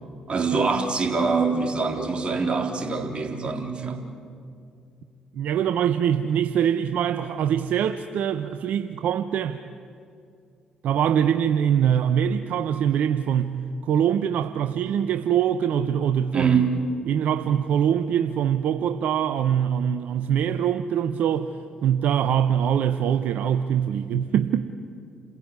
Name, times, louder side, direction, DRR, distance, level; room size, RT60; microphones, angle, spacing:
voice 1, 0.3-4.0 16.3-16.8, right 4 dB, 40° right, 4 dB, 3.7 m, -24 dB
voice 2, 5.3-9.6 10.8-13.6 13.8-16.6 17.1-21.5 21.8-24.7, right 9 dB, 65° right, 9 dB, 0.8 m, -23 dB
29.0 x 16.5 x 9.6 m, 2.4 s
hypercardioid pair, 50°, 3 cm